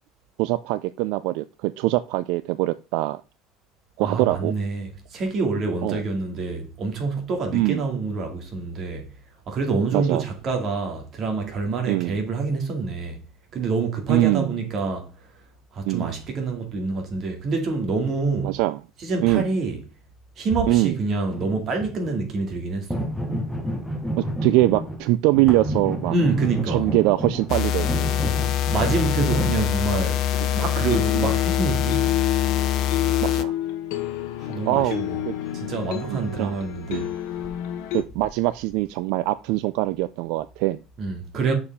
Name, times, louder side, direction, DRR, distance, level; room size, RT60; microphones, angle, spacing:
voice 1, 0.4-3.2 4.0-4.5 5.8-6.0 7.5-7.8 9.9-10.2 11.9-12.2 14.1-14.5 15.9-16.1 18.4-18.8 19.2-19.5 20.7-21.0 24.2-26.1 26.7-28.1 31.1-31.3 33.2-33.5 34.7-35.3 36.1-36.6 36.9-37.1 37.9-40.8, right 17 dB, 70° right, 0.3 m, -23 dB
voice 2, 4.0-9.1 9.5-13.2 13.5-15.1 15.7-18.6 19.0-19.8 20.4-23.1 26.1-26.9 28.7-30.2 30.5-32.1 34.4-35.2 35.5-37.1 41.0-41.5, right 4 dB, 40° right, 2.2 m, -26 dB
sound 1, 21.3-22.2 22.9-25.1 25.3-29.6 35.8-35.9 36.3-36.5 36.8-36.9 37.4-37.5 37.9-38.9, equal, ahead, 1.0 m, -30 dB
sound 2, 27.5-33.4, left 10 dB, 50° left, 0.6 m, -24 dB
sound 3, 30.3-38.0, left 12 dB, 75° left, 1.3 m, -29 dB
6.7 x 4.7 x 3.5 m
cardioid pair, 130°, 0 cm